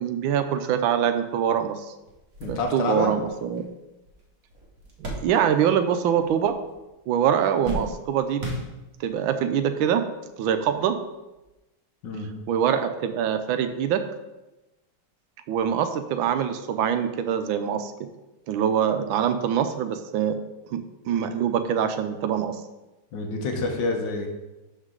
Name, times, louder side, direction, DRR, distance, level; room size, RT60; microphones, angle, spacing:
voice 1, 0.0-1.9 2.5-3.6 5.0-6.5 7.1-8.5 9.0-10.0 10.4-11.0 12.5-14.0 15.5-17.9 18.5-20.4 20.7-22.6, right 8 dB, 75° right, 9 dB, 1.3 m, -24 dB
sound 1, 1.6-1.7 2.1-5.9 6.1-6.8 7.1-9.2 10.0-10.1 11.4-11.5, equal, 45° right, 1.6 m, -37 dB
voice 2, 2.4-3.2 12.0-12.4 23.1-24.3, left 3 dB, 65° left, 3 dB, 1.5 m, -27 dB
11.5 x 4.0 x 3.8 m, 1.0 s
omnidirectional pair, 2.3 m